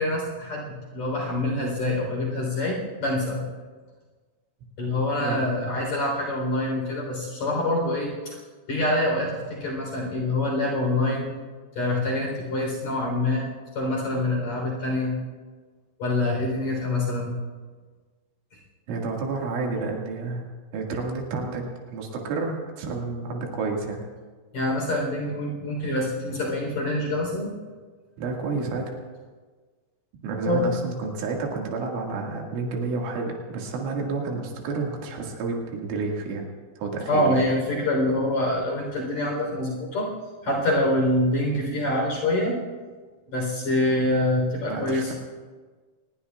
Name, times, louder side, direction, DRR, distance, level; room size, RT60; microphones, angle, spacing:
voice 1, 0.0-3.4 4.8-8.4 8.7-11.3 11.7-13.4 13.7-15.1 16.0-17.3 24.5-27.5 30.5-30.6 37.1-40.1 40.4-42.6 43.3-45.1, left 1 dB, 40° left, -2 dB, 4.5 m, -25 dB
voice 2, 18.9-20.4 20.7-21.7 21.9-24.0 28.2-28.9 30.2-36.4 36.8-37.4 44.7-45.1, right 3 dB, 75° right, 0 dB, 4.4 m, -30 dB
25.0 x 20.0 x 2.4 m, 1.4 s
omnidirectional pair, 5.7 m